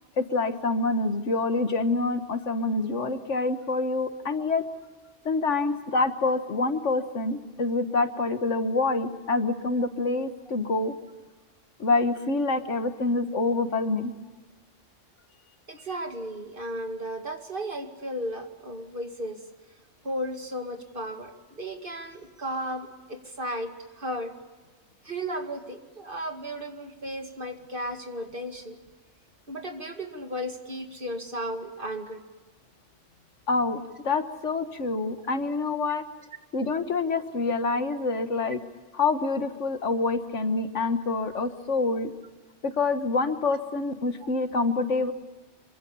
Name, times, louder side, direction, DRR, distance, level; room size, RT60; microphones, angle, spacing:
voice 1, 0.2-4.6 5.3-11.0 11.8-14.1 33.5-36.0 36.5-38.6 38.9-42.1 42.6-45.1, left 3 dB, 75° left, 9 dB, 1.8 m, -26 dB
voice 2, 15.7-19.4 20.0-24.3 25.0-28.8 29.5-32.2 35.2-35.4 35.8-36.0, equal, 45° right, 5 dB, 2.5 m, -35 dB
27.0 x 24.0 x 7.1 m, 1.3 s
omnidirectional pair, 1.3 m